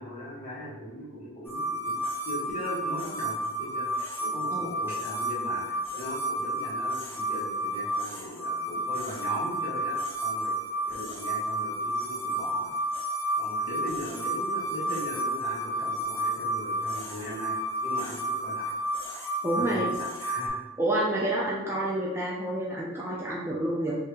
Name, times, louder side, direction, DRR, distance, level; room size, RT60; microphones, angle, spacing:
voice 1, 0.0-2.0 2.2-10.5 10.9-12.7 13.4-18.7 19.6-20.6, equal, 40° left, -9 dB, 1.5 m, -39 dB
sound 1, 1.5-20.5, right 1 dB, 10° left, 0.8 m, -31 dB
voice 2, 19.4-19.8 20.8-24.0, right 1 dB, 10° right, -6 dB, 0.4 m, -28 dB
2.8 x 2.8 x 3.3 m, 1.1 s
head